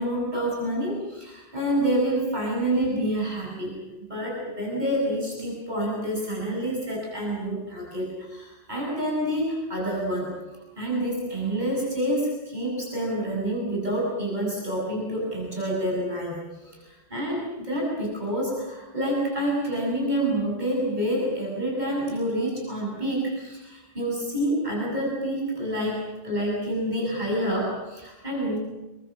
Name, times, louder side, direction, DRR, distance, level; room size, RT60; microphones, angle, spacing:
voice 1, 0.0-3.7 4.1-28.6, right 1 dB, 45° right, -3 dB, 8.0 m, -28 dB
29.0 x 23.0 x 7.5 m, 1.1 s
omnidirectional pair, 1.1 m